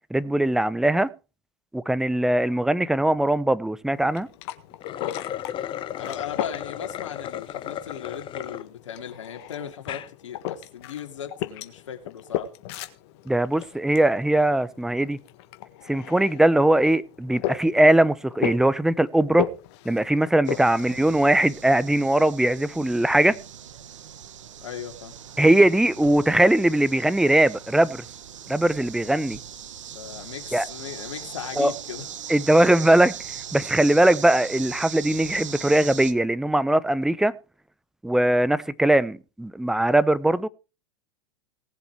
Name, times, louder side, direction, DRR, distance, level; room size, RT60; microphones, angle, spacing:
voice 1, 0.1-1.1 1.7-4.3 13.3-15.2 15.9-19.5 19.8-23.4 25.4-28.0 28.5-29.4 30.5-30.6 31.6-31.7 32.3-33.1 33.5-37.3 38.0-40.5, right 1 dB, 5° right, 0.7 m, -20 dB
sound 1, 3.9-21.8, left 12 dB, 60° left, 1.6 m, -36 dB
sound 2, 4.7-8.6 9.1-9.2 9.7-10.1, left 11 dB, 35° left, 1.0 m, -34 dB
voice 2, 6.0-12.5 24.6-25.1 29.9-32.1, left 9 dB, 85° left, 2.5 m, -37 dB
sound 3, 20.4-36.1, right 9 dB, 85° right, 1.2 m, -40 dB
19.0 x 7.3 x 4.7 m
hypercardioid pair, 105°, 16 cm